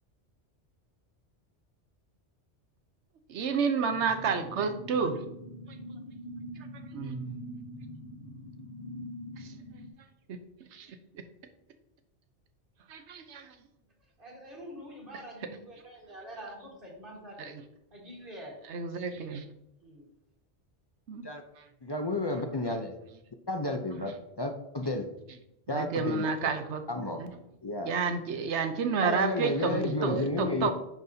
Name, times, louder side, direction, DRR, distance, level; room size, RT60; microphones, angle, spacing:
voice 1, 3.3-5.2 6.9-7.4 9.4-9.5 10.3-10.4 10.7-10.9 12.9-13.5 15.1-15.2 17.4-17.6 18.6-19.4 21.1-21.2 22.7-22.8 23.9-24.0 25.7-26.8 27.2-27.3 27.8-30.7, right 5 dB, 75° right, 7 dB, 1.0 m, -30 dB
sound 1, 3.9-9.9, equal, 55° left, 1.7 m, -43 dB
voice 2, 14.2-17.5 17.9-18.6 19.8-20.0, equal, 50° right, -2 dB, 1.8 m, -46 dB
voice 3, 21.8-22.9 23.5-25.1 25.7-26.3 26.9-27.2 27.6-28.0 29.0-30.7, left 2 dB, 35° left, 4 dB, 0.4 m, -31 dB
10.5 x 3.9 x 2.7 m, 0.84 s
omnidirectional pair, 1.2 m